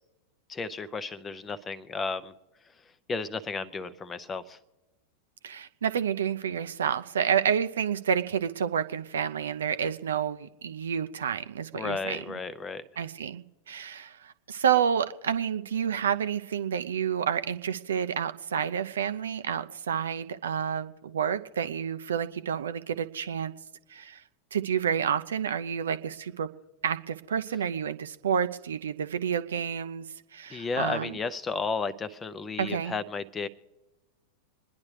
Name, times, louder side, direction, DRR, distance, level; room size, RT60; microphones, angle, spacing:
voice 1, 0.5-2.3 3.1-4.6 11.7-12.8 30.5-33.5, left 4 dB, 20° left, 14 dB, 0.7 m, -33 dB
voice 2, 5.4-12.2 13.0-23.5 23.9-24.2 24.5-26.5 26.8-30.1 30.3-31.2 32.6-32.9, right 8 dB, 65° right, 12 dB, 0.5 m, -29 dB
26.5 x 10.5 x 3.2 m, 1.1 s
figure-of-eight pair, 90°, 0 cm